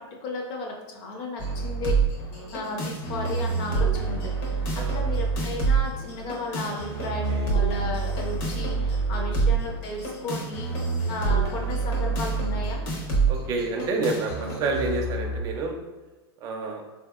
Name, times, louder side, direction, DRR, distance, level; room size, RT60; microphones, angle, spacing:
voice 1, 0.2-1.9 2.5-10.7 11.1-12.8, left 2 dB, 35° left, 1 dB, 0.5 m, -34 dB
sound 1, 1.4-15.4, right 4 dB, 50° left, 0.9 m, -27 dB
voice 2, 4.8-5.2 7.0-7.5 9.1-9.4 11.6-12.0 13.3-15.8 16.4-16.8, right 3 dB, 25° right, 1 dB, 0.4 m, -30 dB
3.5 x 2.7 x 2.3 m, 1.2 s
supercardioid pair, 155°, 14 cm